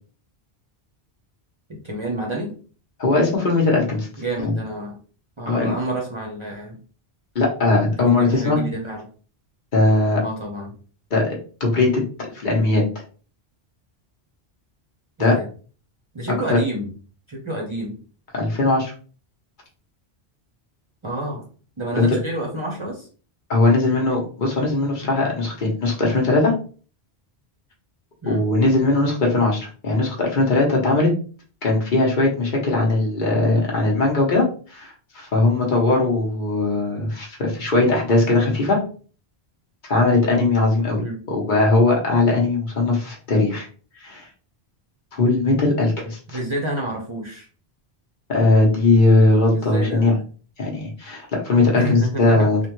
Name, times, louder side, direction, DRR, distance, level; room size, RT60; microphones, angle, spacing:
voice 1, 1.8-2.5 4.2-5.0 5.4-6.8 8.0-9.0 10.2-10.7 15.2-15.4 16.1-16.9 17.3-18.0 21.0-21.4 21.8-23.1 28.2-28.4 41.0-41.2 46.3-47.5 49.5-50.2 51.7-52.5, right 1 dB, 35° right, -2 dB, 0.6 m, -29 dB
voice 2, 3.0-4.1 4.4-4.5 5.5-5.7 7.3-8.6 9.7-10.2 11.1-11.2 11.6-12.0 12.3-12.8 15.2-15.4 16.3-16.6 18.3-18.9 21.9-22.2 23.5-26.5 28.3-31.1 31.6-38.8 39.8-41.0 41.3-43.7 44.0-44.3 45.1-46.4 48.3-50.2 50.6-52.6, left 2 dB, 50° left, -1 dB, 1.0 m, -19 dB
3.4 x 2.2 x 3.0 m, 0.40 s
omnidirectional pair, 1.1 m